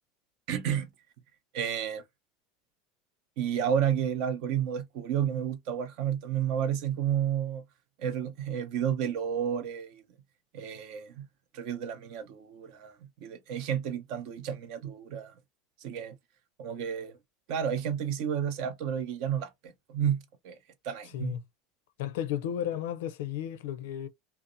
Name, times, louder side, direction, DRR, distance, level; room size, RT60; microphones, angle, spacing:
voice 1, 0.5-0.9 1.5-2.0 3.4-7.6 8.0-10.0 10.5-11.3 11.5-13.0 13.2-15.3 15.8-16.2 16.6-17.1 17.5-19.5 19.9-20.6 20.8-21.4, right 9 dB, 65° right, 0.6 m, -31 dB
voice 2, 22.0-24.1, left 10 dB, 75° left, 0.4 m, -33 dB
2.7 x 2.0 x 2.5 m
hypercardioid pair, 90°, 0 cm